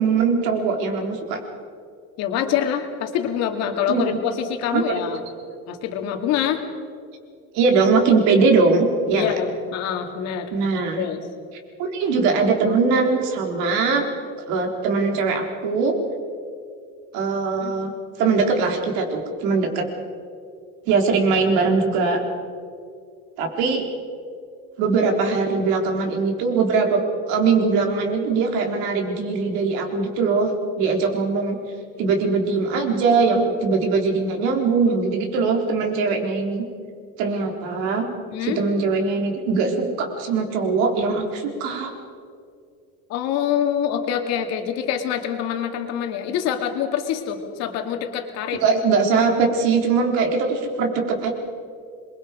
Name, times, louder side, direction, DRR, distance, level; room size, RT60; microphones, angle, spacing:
voice 1, 0.0-1.4 3.9-4.2 4.7-4.8 7.5-9.4 10.5-11.0 11.8-14.0 14.5-15.9 17.1-17.9 18.2-19.9 20.9-22.2 23.4-23.8 24.8-27.0 27.3-30.5 30.8-31.6 32.0-36.6 37.2-38.1 38.4-41.9 48.5-51.3, right 4 dB, 70° right, 2 dB, 4.0 m, -21 dB
voice 2, 2.2-5.2 5.7-6.6 9.1-10.5 11.0-11.2 17.6-17.7 38.3-38.6 43.1-48.6, left 9 dB, 60° left, 5 dB, 2.5 m, -25 dB
27.5 x 22.5 x 5.2 m, 2.3 s
cardioid pair, 170°, 30 cm